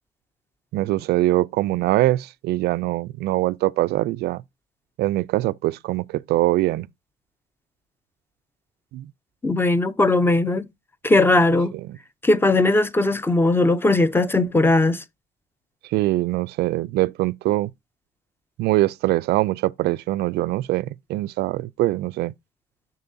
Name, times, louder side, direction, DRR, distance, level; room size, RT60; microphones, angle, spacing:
voice 1, 0.7-4.4 5.0-6.9 8.9-9.1 15.9-17.7 18.6-22.3, right 17 dB, 75° right, 0.4 m, -23 dB
voice 2, 9.4-10.7 11.0-11.7 12.2-15.0, left 2 dB, 15° left, 0.5 m, -18 dB
6.8 x 6.6 x 2.6 m
cardioid pair, 110°, 17 cm